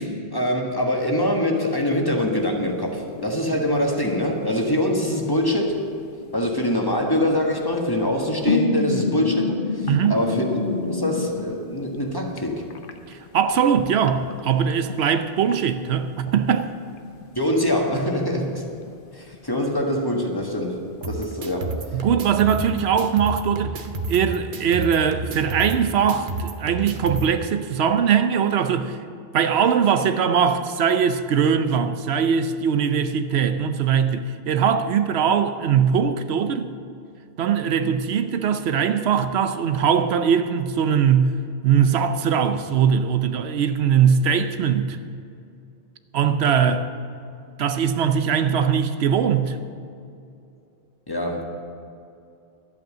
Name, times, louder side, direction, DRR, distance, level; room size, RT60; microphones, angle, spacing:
voice 1, 0.0-5.8 6.3-12.7 17.3-18.6 19.1-20.8 21.0-21.8 51.1-51.4, left 1 dB, 20° left, 1.4 m, -24 dB
sound 1, 2.4-4.6 4.9-6.9 7.9-12.4 12.7-14.9 16.1-16.3 16.5-16.6 17.0-17.5 17.9-18.0 18.3-18.9 19.3-19.8 20.2-20.3 20.7-20.8 21.0-21.8, left 3 dB, 55° left, 1.0 m, -29 dB
voice 2, 9.9-10.2 13.1-16.7 21.9-29.0 29.3-36.7 37.4-41.4 41.6-45.0 46.1-46.8 47.6-49.6, right 7 dB, 80° right, 0.9 m, -21 dB
sound 2, 21.0-27.2, right 3 dB, 55° right, 1.0 m, -31 dB
11.5 x 8.6 x 7.4 m
omnidirectional pair, 1.1 m